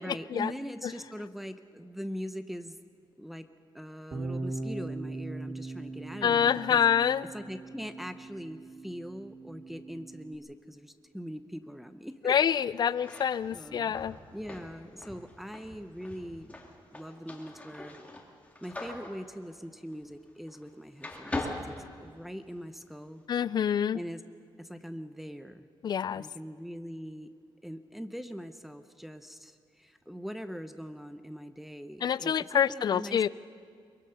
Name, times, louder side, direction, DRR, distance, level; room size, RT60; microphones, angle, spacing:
voice 1, 0.0-2.7 3.2-3.5 3.7-6.8 7.3-12.3 13.5-14.0 14.3-16.5 16.9-18.0 18.6-21.8 22.0-23.2 23.9-24.2 24.6-25.7 26.1-27.3 27.6-33.2, equal, ahead, 8 dB, 0.7 m, -42 dB
Bass guitar, 4.1-10.4, right 2 dB, 45° right, 3.8 m, -40 dB
voice 2, 6.2-7.3 12.2-14.1 23.3-24.0 25.8-26.3 32.0-33.3, left 8 dB, 55° left, 18 dB, 0.4 m, -26 dB
sound 1, 12.9-20.7 21.0-22.6, left 2 dB, 15° left, 2.3 m, -42 dB
22.5 x 22.5 x 5.7 m, 2.2 s
wide cardioid pair, 150°, 9 cm